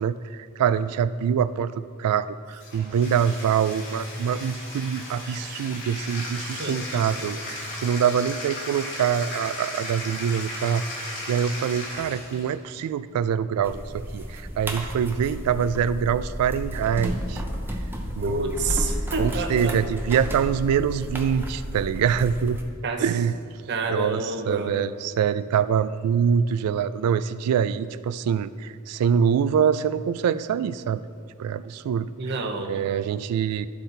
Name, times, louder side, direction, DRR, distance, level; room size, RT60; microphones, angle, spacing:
voice 1, 0.0-17.4 18.2-18.6 19.2-22.6 23.0-23.3 23.9-31.0 31.4-32.1 32.7-33.7, right 7 dB, 85° right, 15 dB, 0.3 m, -25 dB
Bathtub (filling or washing), 2.5-12.5, left 1 dB, 55° left, 1.5 m, -36 dB
voice 2, 6.6-7.3 18.2-19.8 22.8-23.0 23.7-24.8 32.2-32.9, right 3 dB, 50° right, 5 dB, 0.7 m, -29 dB
sound 1, 13.6-22.6, equal, 10° right, 0.6 m, -32 dB
11.5 x 4.2 x 3.9 m, 2.1 s
head